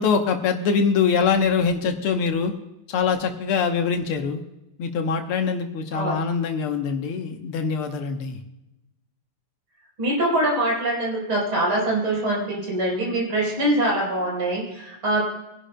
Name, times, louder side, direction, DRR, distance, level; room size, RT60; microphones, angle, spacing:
voice 1, 0.0-2.5 2.9-4.4 4.8-8.4, left 6 dB, 85° left, 4 dB, 1.9 m, -23 dB
voice 2, 10.0-15.2, right 1 dB, 80° right, -2 dB, 5.1 m, -23 dB
23.0 x 11.5 x 2.2 m, 0.92 s
omnidirectional pair, 2.3 m